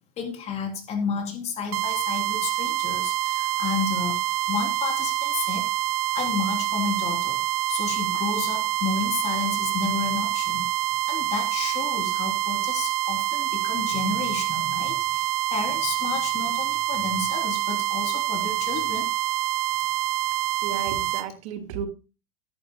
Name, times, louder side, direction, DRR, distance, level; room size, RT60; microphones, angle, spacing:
voice 1, 0.2-5.7 6.1-7.4 7.7-10.7 11.1-19.1, left 5 dB, 35° left, 3 dB, 3.3 m, -31 dB
sound 1, 1.7-21.3, right 14 dB, 80° right, 0.6 m, -26 dB
voice 2, 20.6-21.9, right 7 dB, 60° right, 7 dB, 2.0 m, -33 dB
13.0 x 11.0 x 2.2 m, 0.31 s
supercardioid pair, 120°, 19 cm